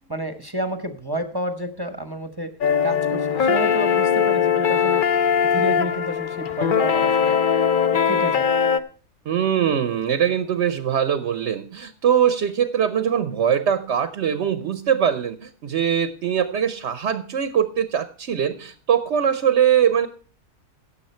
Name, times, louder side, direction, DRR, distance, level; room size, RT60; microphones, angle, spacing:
voice 1, 0.1-2.5 2.8-5.0 5.4-7.4 8.1-8.6, equal, 20° right, 7 dB, 0.7 m, -30 dB
sound 1, 2.6-8.8, left 7 dB, 85° left, 0.4 m, -20 dB
voice 2, 9.3-20.1, right 8 dB, 55° right, 10 dB, 0.9 m, -22 dB
16.0 x 7.3 x 4.4 m, 0.41 s
omnidirectional pair, 1.7 m